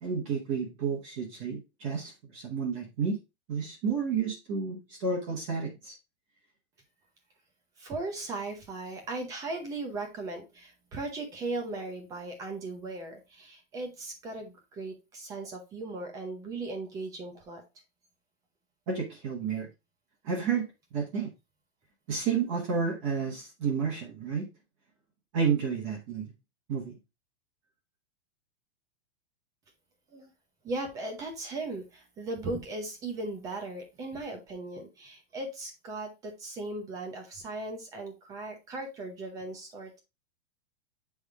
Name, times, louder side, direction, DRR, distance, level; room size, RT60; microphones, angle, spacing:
voice 1, 0.0-3.2 3.5-5.9 18.9-19.7 20.2-20.7 20.9-21.3 22.1-24.5 25.3-26.3 26.7-27.0, right 5 dB, 30° right, -1 dB, 1.3 m, -31 dB
voice 2, 7.8-17.6 30.1-30.3 30.6-40.0, right 2 dB, 10° right, 4 dB, 0.7 m, -37 dB
8.0 x 3.6 x 3.4 m, 0.25 s
supercardioid pair, 175°, 32 cm